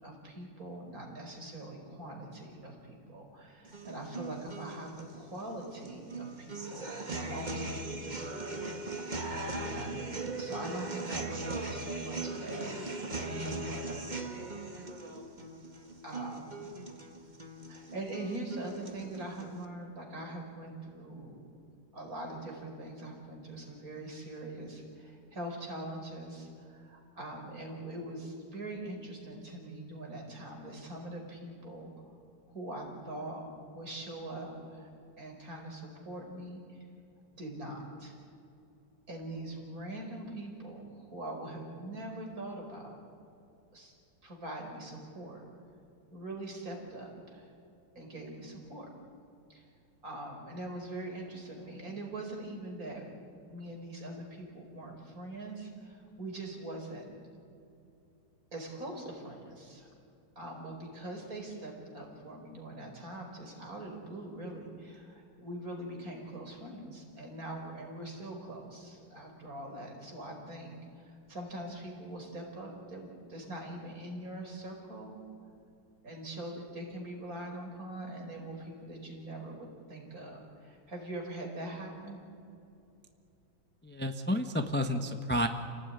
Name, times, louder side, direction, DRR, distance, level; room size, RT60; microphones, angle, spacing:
voice 1, 0.0-8.8 9.6-14.9 16.0-16.9 17.7-21.4 21.9-32.1 32.5-33.4 33.7-34.9 35.2-36.8 37.3-38.2 39.1-43.0 43.7-43.9 44.2-45.4 46.1-47.5 47.9-48.9 49.5-49.6 50.0-53.0 53.5-57.1 58.5-59.9 60.3-75.2 76.0-82.2, right 1 dB, 50° right, 1 dB, 5.2 m, -43 dB
sound 1, 3.6-19.6, right 2 dB, 25° right, 1.9 m, -40 dB
voice 2, 83.8-85.5, left 1 dB, 5° left, 5 dB, 1.0 m, -30 dB
29.0 x 18.0 x 9.8 m, 2.7 s
omnidirectional pair, 2.0 m